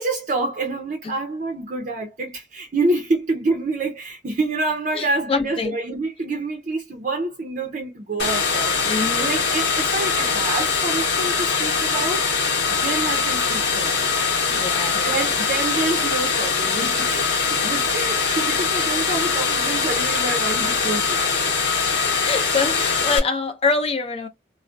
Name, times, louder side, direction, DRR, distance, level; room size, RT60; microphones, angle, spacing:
voice 1, 0.0-12.2 12.8-14.1 15.0-21.4, right 2 dB, 45° right, 0.5 m, -27 dB
voice 2, 4.9-5.8 8.8-9.3 14.5-15.3 22.2-24.3, left 4 dB, 35° left, 0.5 m, -25 dB
sound 1, 8.2-23.2, left 5 dB, 85° left, 0.9 m, -22 dB
2.4 x 2.0 x 2.5 m
head